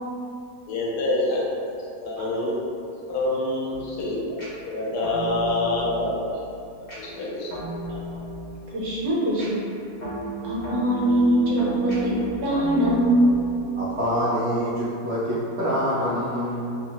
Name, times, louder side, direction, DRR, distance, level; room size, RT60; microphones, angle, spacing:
voice 1, 0.7-1.4 2.0-2.5 3.1-4.2 4.7-6.2 7.0-7.6, left 2 dB, 75° left, -4 dB, 1.1 m, -26 dB
sound 1, 3.7-14.3, right 2 dB, 55° left, 0.5 m, -35 dB
voice 2, 8.7-9.7 10.4-12.1 12.4-13.4, right 1 dB, 65° right, -7 dB, 1.2 m, -22 dB
voice 3, 13.8-16.8, equal, 90° right, -10 dB, 0.5 m, -25 dB
3.6 x 2.0 x 2.8 m, 2.6 s
omnidirectional pair, 1.8 m